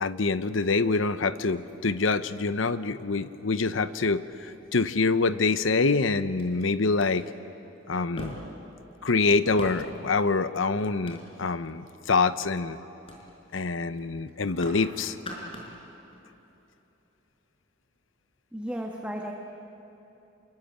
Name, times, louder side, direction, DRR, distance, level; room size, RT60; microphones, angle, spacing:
voice 1, 0.0-4.2 4.7-7.3 7.9-8.3 9.0-12.8 13.5-15.1, left 4 dB, 85° left, 12 dB, 0.8 m, -25 dB
sound 1, 1.6-2.5 3.3-3.4 4.1-4.7 5.6-5.7 6.4-6.5 6.9-7.1 8.2-8.7 9.4-10.0 10.7-11.6 12.1-12.5 13.1-13.2 13.5-13.7 14.0-14.9 15.1-15.8 16.1-16.2, equal, 30° left, 5.2 m, -42 dB
voice 2, 18.5-19.3, equal, 5° right, 0 dB, 1.6 m, -34 dB
27.5 x 22.5 x 8.9 m, 3.0 s
head